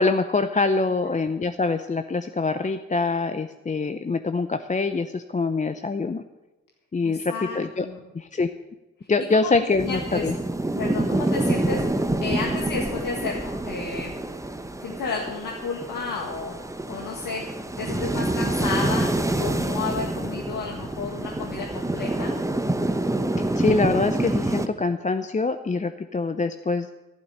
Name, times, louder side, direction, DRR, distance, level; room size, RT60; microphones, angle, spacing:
voice 1, 0.0-6.2 6.9-7.9 8.1-8.5 9.1-10.4 23.4-26.9, left 3 dB, 25° left, 9 dB, 0.7 m, -24 dB
voice 2, 7.0-8.0 9.8-10.3 10.8-11.8 12.2-14.1 14.8-16.5 16.9-17.4 17.8-19.1 19.4-22.3, left 4 dB, 90° left, -1 dB, 1.8 m, -32 dB
sound 1, 9.8-24.7, right 2 dB, 10° right, 0.9 m, -27 dB
11.5 x 11.5 x 6.7 m, 1.1 s
cardioid pair, 70°, 32 cm